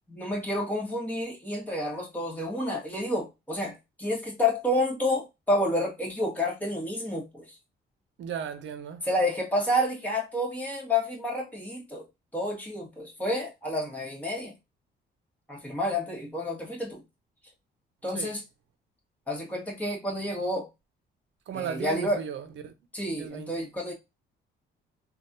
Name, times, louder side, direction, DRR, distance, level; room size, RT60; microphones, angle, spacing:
voice 1, 0.1-7.5 9.0-12.1 12.3-14.5 15.5-17.0 18.0-18.4 19.3-20.7 21.5-22.2 22.9-23.9, left 1 dB, 10° left, 1.4 m, -29 dB
voice 2, 8.2-9.0 18.1-18.3 21.5-22.7 23.2-23.5, right 8 dB, 70° right, 0.7 m, -36 dB
3.4 x 2.4 x 2.6 m
cardioid pair, 90°, 20 cm